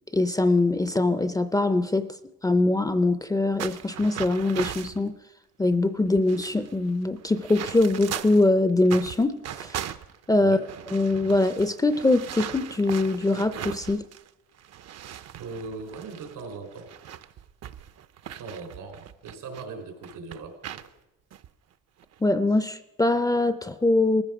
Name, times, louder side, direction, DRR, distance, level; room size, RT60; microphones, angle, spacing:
voice 1, 0.1-2.1 2.4-5.1 5.6-9.8 10.3-10.6 10.9-14.0 22.2-24.2, left 2 dB, 10° left, 12 dB, 0.4 m, -23 dB
sound 1, 3.6-5.0 5.7-5.8 6.1-8.5 8.8-14.3 14.6-19.6 20.0-20.9 21.3-21.5 22.0-22.3, right 10 dB, 55° right, 0.6 m, -39 dB
voice 2, 15.4-16.9 18.3-20.8, right 4 dB, 85° right, 4 dB, 4.2 m, -39 dB
19.0 x 15.0 x 5.0 m, 1.0 s
cardioid pair, 125°, 32 cm